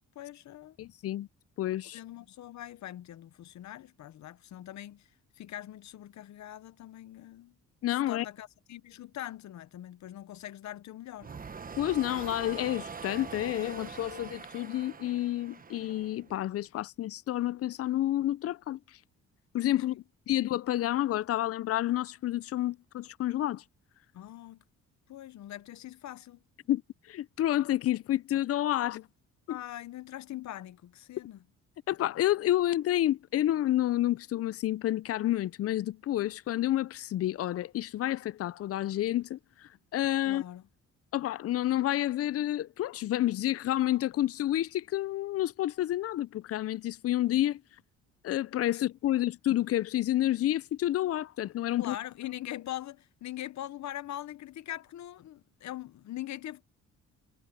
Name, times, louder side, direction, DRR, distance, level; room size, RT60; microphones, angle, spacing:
voice 1, 0.1-0.8 1.9-5.1 5.4-7.5 7.9-11.3 19.9-20.0 24.1-24.6 25.1-26.4 29.5-31.4 40.3-40.6 48.7-48.8 51.8-56.6, left 13 dB, 65° left, 0.9 m, -42 dB
voice 2, 0.8-1.3 1.6-2.0 7.8-8.3 11.8-18.8 19.5-20.0 20.3-23.6 26.7-26.8 27.1-29.1 29.5-29.6 31.9-40.4 41.1-47.6 48.2-52.0, left 13 dB, 50° left, 0.5 m, -29 dB
sound 1, 11.2-16.4, right 5 dB, 30° right, 1.2 m, -43 dB
cardioid pair, 90°, 30 cm